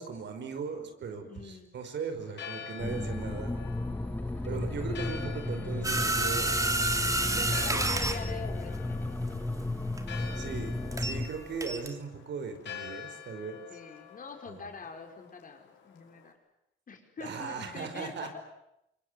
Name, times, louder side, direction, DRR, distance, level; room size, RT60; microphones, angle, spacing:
voice 1, 0.0-3.6 4.4-6.5 7.2-7.9 10.4-13.7 14.5-14.6 17.2-18.4, right 5 dB, 65° right, 7 dB, 5.2 m, -38 dB
voice 2, 1.2-1.7 7.3-9.2 13.7-16.3 16.9-18.4, left 4 dB, 45° left, 4 dB, 5.5 m, -44 dB
Church bell, 2.2-16.3, left 8 dB, 65° left, 5.9 m, -47 dB
sound 1, 2.8-11.3, left 2 dB, 10° left, 1.4 m, -34 dB
sound 2, 5.8-11.3 11.6-11.9, right 2 dB, 15° right, 3.2 m, -30 dB
26.5 x 24.0 x 9.5 m, 0.81 s
cardioid pair, 90°, 20 cm